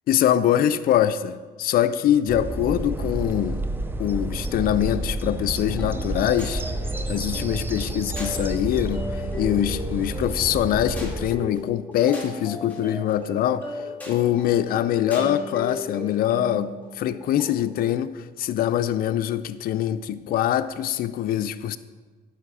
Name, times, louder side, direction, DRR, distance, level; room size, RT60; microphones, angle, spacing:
voice 1, 0.1-3.6 4.0-6.6 7.1-13.7 14.1-21.8, left 11 dB, 60° left, 12 dB, 0.5 m, -23 dB
sound 1, 2.3-11.3, right 2 dB, 10° right, 0.5 m, -30 dB
sound 2, 5.8-17.9, left 1 dB, 10° left, 2.1 m, -37 dB
10.0 x 6.0 x 4.9 m, 1.4 s
cardioid pair, 110°, 17 cm